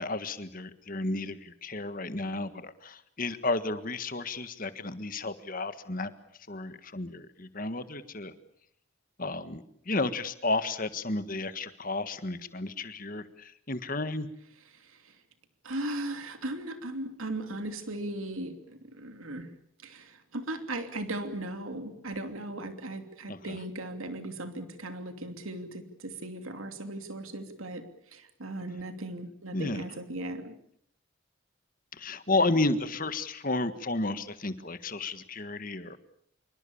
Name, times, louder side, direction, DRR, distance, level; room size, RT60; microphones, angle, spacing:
voice 1, 0.0-6.1 6.5-8.3 9.2-14.3 23.3-23.6 29.5-29.8 31.9-36.0, left 2 dB, 40° left, 11 dB, 1.6 m, -32 dB
voice 2, 14.7-15.2 15.6-19.5 19.8-30.5, right 1 dB, 80° right, 7 dB, 2.9 m, -37 dB
26.0 x 24.0 x 7.2 m, 0.70 s
head